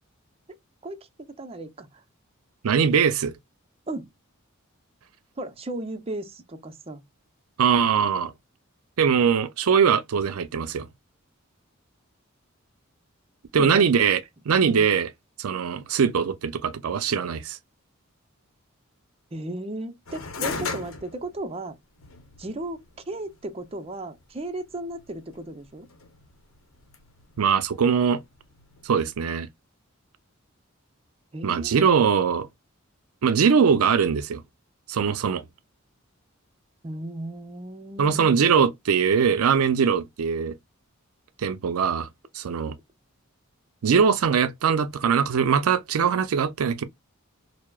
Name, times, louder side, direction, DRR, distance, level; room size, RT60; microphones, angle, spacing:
voice 1, 0.8-1.9 3.9-4.1 5.4-7.0 13.6-13.9 14.6-14.9 19.3-21.8 22.4-25.9 31.3-31.8 36.8-38.4, right 1 dB, 30° right, 0.5 m, -35 dB
voice 2, 2.6-3.3 7.6-8.3 9.0-10.9 13.5-14.2 14.5-15.1 15.4-17.6 27.4-28.2 28.8-29.5 31.4-32.5 33.2-34.4 34.9-35.5 38.0-40.5 41.4-42.1 42.3-42.7 43.8-46.8, right 6 dB, 90° right, 0.5 m, -21 dB
sound 1, 20.1-29.2, left 4 dB, 65° left, 0.8 m, -39 dB
4.6 x 2.0 x 2.2 m
head